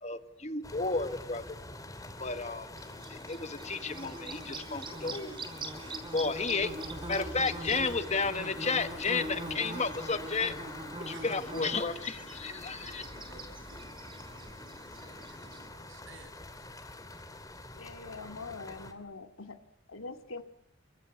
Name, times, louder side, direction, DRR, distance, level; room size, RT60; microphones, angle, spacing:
voice 1, 0.0-1.6 2.2-2.7 3.1-5.4 6.1-6.7 7.1-10.6 11.1-13.0, left 4 dB, 35° left, 9 dB, 1.7 m, -32 dB
sound 1, 0.6-18.9, left 2 dB, 15° left, 2.9 m, -46 dB
Bird / Buzz, 2.8-15.7, right 2 dB, 25° right, 4.5 m, -43 dB
voice 2, 11.1-16.3, right 2 dB, 70° right, 6 dB, 7.8 m, -55 dB
voice 3, 17.7-19.6 19.9-20.4, left 3 dB, 90° left, 7 dB, 2.6 m, -43 dB
29.0 x 24.5 x 8.3 m, 0.70 s
head